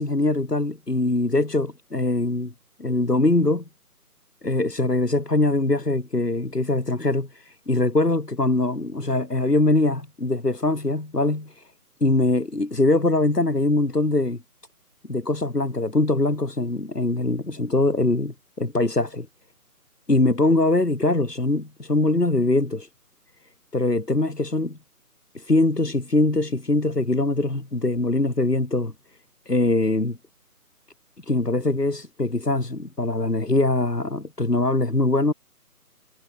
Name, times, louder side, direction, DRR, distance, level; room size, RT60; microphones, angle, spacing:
voice 1, 0.0-2.5 2.8-3.6 4.4-11.6 12.0-14.4 15.1-19.3 20.1-22.9 23.7-24.8 25.3-28.9 29.5-30.2 31.3-35.3, left 2 dB, 80° left, 4.5 m, -22 dB
figure-of-eight pair, 150°, 47 cm